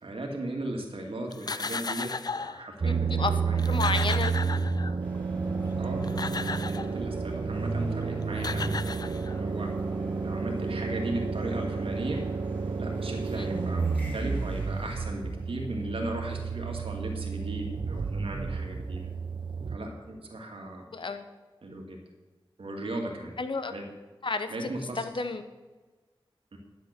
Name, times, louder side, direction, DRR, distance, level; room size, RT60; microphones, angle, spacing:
voice 1, 0.0-3.8 5.8-6.1 6.7-8.7 9.3-9.7 10.2-12.2 12.8-19.1 19.7-20.9 21.6-22.0 22.6-23.4 23.7-23.8 24.5-25.1 26.5-26.6, right 1 dB, 80° right, 1 dB, 2.3 m, -36 dB
sound 1, 1.3-2.6 3.3-3.4 3.6-5.2 5.8-7.0 8.0-8.1 8.3-9.6, left 4 dB, 45° left, 0.4 m, -35 dB
sound 2, 2.8-19.8, right 5 dB, 60° right, 0.6 m, -31 dB
voice 2, 3.7-4.3 13.4-13.5 20.9-21.2 23.4-23.7 24.2-24.5 25.0-25.4, left 4 dB, 60° left, 9 dB, 1.1 m, -30 dB
sound 3, 5.0-15.0, equal, 15° left, 4.7 m, -49 dB
11.5 x 8.0 x 6.6 m, 1.3 s
wide cardioid pair, 65°, 9 cm